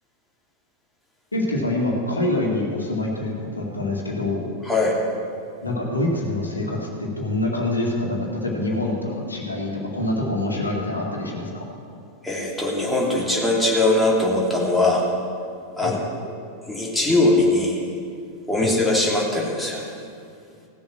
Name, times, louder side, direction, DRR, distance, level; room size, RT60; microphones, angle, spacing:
voice 1, 1.3-4.4 5.6-11.6 15.8-15.9 18.6-18.7, left 1 dB, 80° left, -1 dB, 2.0 m, -25 dB
voice 2, 12.2-15.0 15.8-16.0 16.2-16.3 16.7-17.8 18.5-19.9, left 2 dB, ahead, -5 dB, 2.7 m, -21 dB
17.0 x 7.1 x 6.1 m, 2.4 s
figure-of-eight pair, 90°, 0 cm